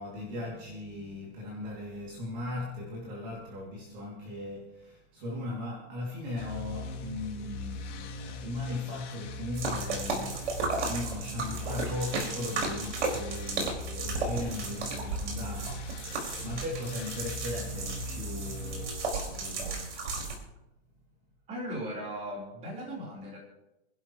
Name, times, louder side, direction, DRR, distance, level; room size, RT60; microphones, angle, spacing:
voice 1, 0.0-20.2, left 2 dB, 40° right, 2.8 m, -38 dB
sound 1, 6.4-18.9, left 2 dB, 85° left, 2.7 m, -40 dB
sound 2, 9.5-20.4, right 3 dB, 75° right, 5.1 m, -34 dB
voice 2, 21.5-23.4, equal, 20° right, 3.9 m, -37 dB
27.0 x 12.0 x 3.2 m
hypercardioid pair, 170°, 35 cm